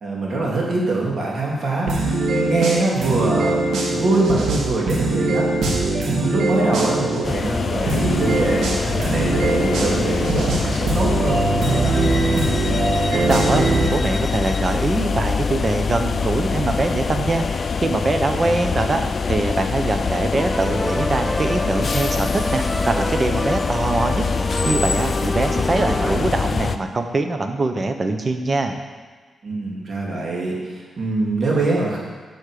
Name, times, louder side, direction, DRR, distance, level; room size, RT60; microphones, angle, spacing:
voice 1, 0.0-5.5 6.0-12.0 25.8-26.3 29.4-32.0, right 2 dB, 55° right, -3 dB, 3.0 m, -23 dB
sound 1, 1.9-7.2 7.9-13.9, right 2 dB, 75° right, 1.8 m, -21 dB
sound 2, 7.2-26.8, left 5 dB, 50° left, 0.5 m, -24 dB
voice 2, 13.1-17.4 17.8-19.0 19.3-24.2 24.6-28.8, right 3 dB, 40° right, 6 dB, 1.1 m, -23 dB
sound 3, 20.3-26.2, equal, ahead, 0.4 m, -28 dB
8.9 x 6.4 x 6.7 m, 1.4 s
cardioid pair, 75°, 0 cm